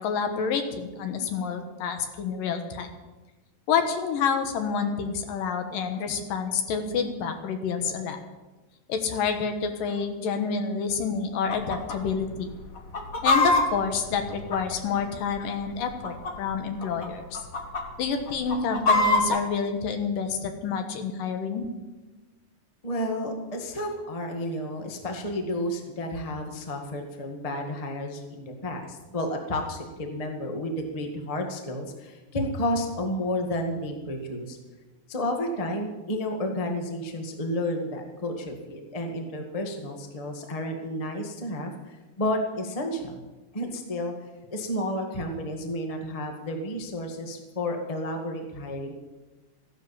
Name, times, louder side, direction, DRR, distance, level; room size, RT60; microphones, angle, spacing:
voice 1, 0.0-2.9 3.7-8.2 8.9-12.5 13.2-17.4 18.0-21.7, left 6 dB, 75° left, 6 dB, 3.0 m, -28 dB
Chicken rooster, 11.5-12.0 12.2-12.3 12.8-15.0 15.7-16.5 16.8-17.1 17.3-17.8 18.3-19.4, left 2 dB, 55° left, 0.9 m, -24 dB
voice 2, 22.8-34.6 35.1-43.2 43.5-44.1 44.5-48.9, left 1 dB, 25° left, 3 dB, 0.8 m, -31 dB
14.5 x 11.0 x 7.5 m, 1.2 s
omnidirectional pair, 4.0 m